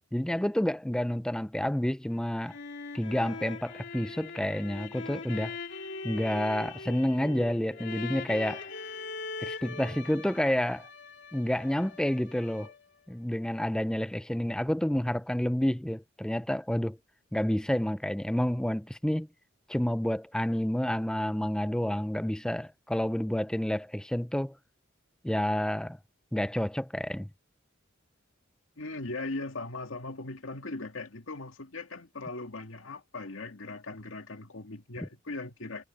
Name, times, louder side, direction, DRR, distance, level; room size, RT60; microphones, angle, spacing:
voice 1, 0.1-2.6 2.9-5.6 6.0-8.6 9.4-10.9 11.3-12.7 13.1-17.0 17.3-19.3 19.7-24.6 25.2-26.0 26.3-27.3, equal, 5° left, 0.4 m, -29 dB
sound 1, 2.1-13.0, left 4 dB, 60° left, 2.8 m, -41 dB
voice 2, 28.8-35.8, left 2 dB, 80° left, 2.1 m, -39 dB
head